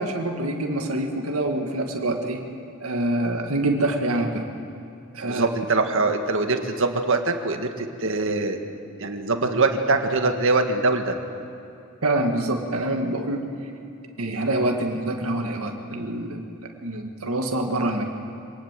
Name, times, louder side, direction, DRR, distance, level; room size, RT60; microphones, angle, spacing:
voice 1, 0.0-2.4 2.8-4.5 5.1-5.5 12.0-13.5 14.2-16.4 16.8-18.0, right 1 dB, 80° right, 3 dB, 2.0 m, -25 dB
voice 2, 5.2-8.6 9.0-11.2, right 3 dB, 65° right, 5 dB, 1.8 m, -23 dB
25.0 x 19.0 x 7.6 m, 2.8 s
head